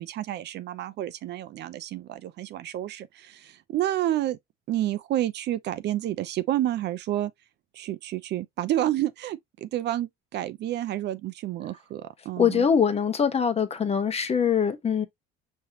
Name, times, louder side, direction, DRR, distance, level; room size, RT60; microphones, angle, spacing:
voice 1, 0.0-4.4 4.7-7.3 7.7-12.7, right 13 dB, 55° right, 0.6 m, -29 dB
voice 2, 12.4-15.0, left 7 dB, 30° left, 1.1 m, -23 dB
5.4 x 3.2 x 2.8 m
cardioid pair, 105°, 21 cm